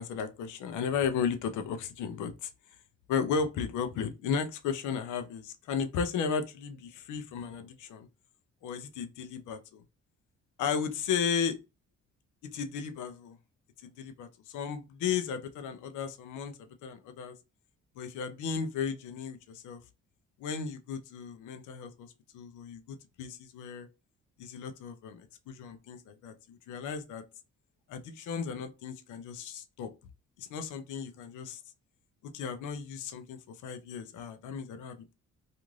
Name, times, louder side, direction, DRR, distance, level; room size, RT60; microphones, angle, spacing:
voice 1, 0.0-2.5 3.1-8.1 8.6-9.8 10.6-11.6 12.5-13.4 13.8-17.4 18.0-19.8 20.4-23.9 24.4-27.2 27.9-29.9 30.4-31.6 32.3-35.1, left 6 dB, 80° left, 0.6 m, -35 dB
2.5 x 2.5 x 3.1 m
cardioid pair, 90°, 30 cm